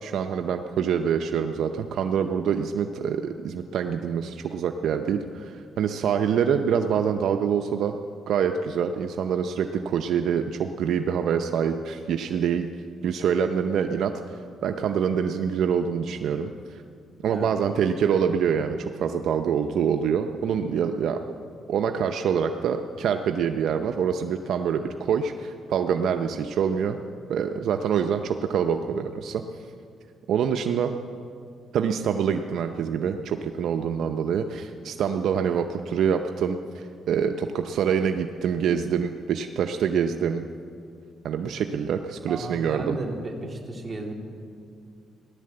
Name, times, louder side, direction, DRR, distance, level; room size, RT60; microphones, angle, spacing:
voice 1, 0.0-8.0 8.3-12.7 13.0-16.8 17.2-21.2 21.7-27.0 27.3-29.4 30.3-30.9 31.7-40.4 41.2-43.0, right 7 dB, 75° right, 6 dB, 0.6 m, -25 dB
voice 2, 42.3-44.1, right 2 dB, 30° right, 1 dB, 2.5 m, -34 dB
16.5 x 11.5 x 7.7 m, 2.3 s
cardioid pair, 90°, 0 cm